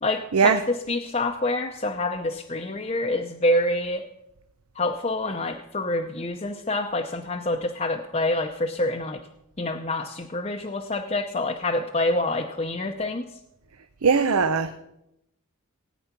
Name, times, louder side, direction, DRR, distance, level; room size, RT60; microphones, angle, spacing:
voice 1, 0.0-4.0 4.7-9.2 9.6-13.2, left 2 dB, 30° left, 2 dB, 0.7 m, -27 dB
voice 2, 14.0-14.8, right 5 dB, 85° right, 9 dB, 0.7 m, -20 dB
18.0 x 9.3 x 5.9 m, 0.85 s
head